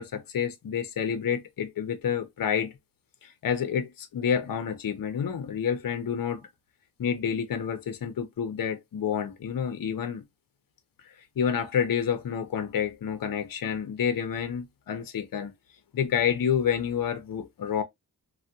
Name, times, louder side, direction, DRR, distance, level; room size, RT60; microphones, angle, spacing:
voice 1, 0.0-2.7 3.2-6.5 7.0-10.2 11.4-15.5 15.9-17.8, left 8 dB, 60° left, 0.6 m, -29 dB
3.3 x 2.2 x 2.6 m
wide cardioid pair, 135°, 40 cm